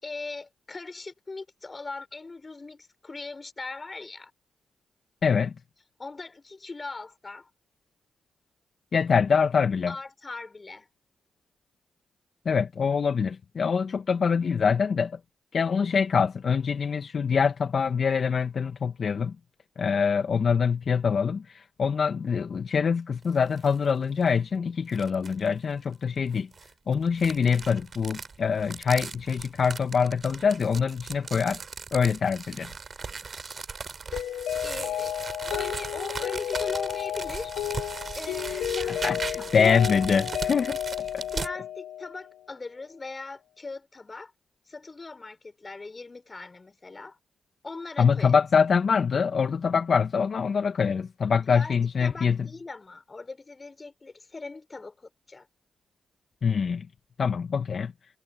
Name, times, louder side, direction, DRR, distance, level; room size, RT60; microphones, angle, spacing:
voice 1, 0.0-4.3 6.0-7.5 9.9-10.9 34.6-37.5 38.2-39.0 39.3-39.8 41.3-44.3 44.7-47.2 47.6-48.4 51.5-51.8 52.0-55.5, left 3 dB, 35° left, 5.5 m, -39 dB
voice 2, 5.2-5.5 8.9-9.9 12.4-15.2 15.5-19.3 19.8-26.5 26.9-31.6 31.9-32.7 39.0-40.8 41.1-41.2 48.0-52.4 56.4-56.9 57.2-57.9, left 6 dB, 60° left, 1.4 m, -24 dB
sound 1, 23.2-23.8 24.2-24.3 24.9-25.5 26.3-41.5, right 4 dB, 50° right, 3.4 m, -38 dB
Mallet percussion, 34.1-42.3, left 11 dB, 90° left, 0.8 m, -32 dB
supercardioid pair, 55°, 0 cm